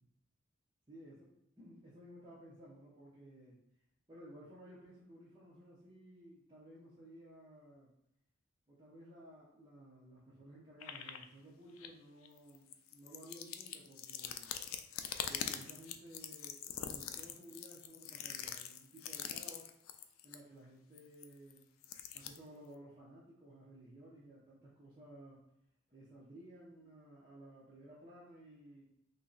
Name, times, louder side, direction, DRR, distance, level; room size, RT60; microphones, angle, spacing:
voice 1, 0.9-3.6 4.1-7.9 8.7-14.5 15.2-19.7 20.2-21.6 22.1-25.4 25.9-28.8, right 1 dB, 20° right, -8 dB, 0.7 m, -56 dB
sound 1, 10.8-11.2 11.8-11.9 12.2-20.4 21.0-22.4, left 8 dB, 85° left, 0.3 m, -43 dB
3.0 x 2.7 x 3.8 m, 0.80 s
head